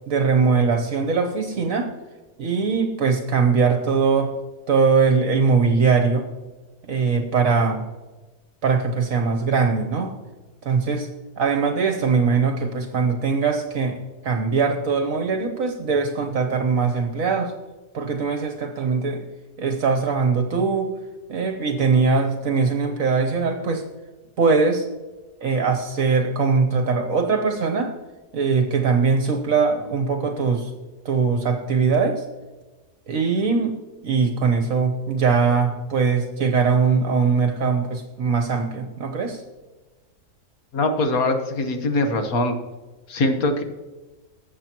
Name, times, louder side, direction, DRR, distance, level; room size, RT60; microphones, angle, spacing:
voice 1, 0.1-1.9 2.4-4.4 4.7-6.3 6.9-7.8 8.6-10.1 10.6-11.1 11.4-17.5 17.9-19.3 19.6-20.9 21.3-23.9 24.4-24.9 25.4-27.9 28.3-30.7 31.0-32.2 33.1-33.7 34.0-39.4, right 5 dB, 60° right, 5 dB, 1.3 m, -21 dB
voice 2, 40.7-42.5 43.1-43.6, left 2 dB, 65° left, 6 dB, 1.6 m, -22 dB
19.0 x 7.3 x 3.0 m, 1.2 s
omnidirectional pair, 1.7 m